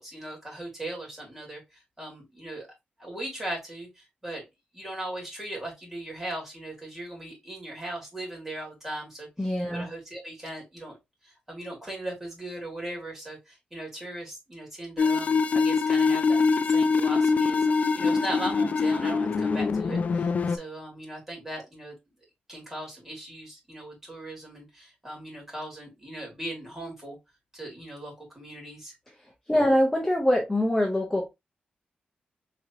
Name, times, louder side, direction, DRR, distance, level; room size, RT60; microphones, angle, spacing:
voice 1, 0.0-2.7 3.0-4.4 4.7-11.0 11.2-16.4 16.7-21.9 22.5-27.2 27.5-28.9 29.5-29.7, right 1 dB, 10° right, 2.6 m, -38 dB
voice 2, 9.4-9.9 29.5-31.3, left 1 dB, 10° left, 0.7 m, -24 dB
sound 1, 15.0-20.6, left 4 dB, 50° left, 0.4 m, -24 dB
3.9 x 3.2 x 2.8 m
wide cardioid pair, 120°, 3 cm